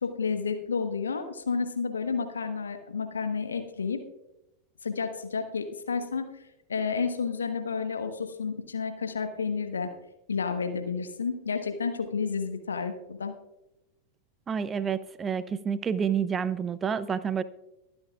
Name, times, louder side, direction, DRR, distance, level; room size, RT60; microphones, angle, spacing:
voice 1, 0.0-4.0 4.8-6.3 6.7-9.9 10.3-13.3, left 5 dB, 70° left, 7 dB, 1.2 m, -31 dB
voice 2, 14.5-17.4, right 7 dB, 20° right, 16 dB, 0.5 m, -29 dB
23.5 x 8.8 x 2.4 m, 0.91 s
figure-of-eight pair, 90°, 0 cm